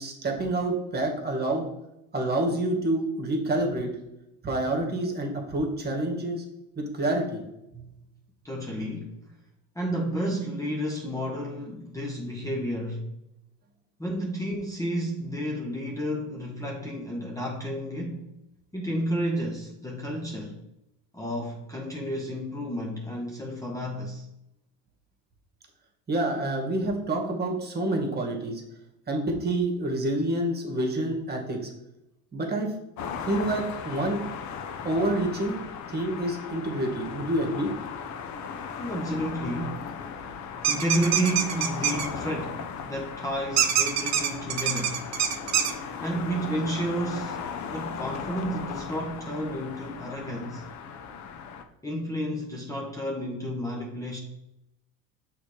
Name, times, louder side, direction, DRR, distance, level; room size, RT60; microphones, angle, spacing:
voice 1, 0.0-1.6 2.1-3.9 4.4-6.4 6.8-7.4 7.7-7.9 26.1-28.6 29.1-31.7 32.3-32.7 33.2-34.2 34.8-35.6 35.9-37.7, right 1 dB, 25° right, 1 dB, 1.9 m, -28 dB
voice 2, 8.4-9.3 9.7-13.1 14.0-18.3 18.7-20.6 21.1-24.3 38.8-39.8 40.7-45.0 46.0-50.7 51.8-54.2, equal, 10° left, -1 dB, 1.0 m, -31 dB
sound 1, 33.0-51.6, left 6 dB, 45° left, 0.9 m, -37 dB
sound 2, 40.6-42.1 43.6-45.7, right 9 dB, 40° right, 0.9 m, -24 dB
6.2 x 3.6 x 5.1 m, 0.88 s
supercardioid pair, 95°, 40 cm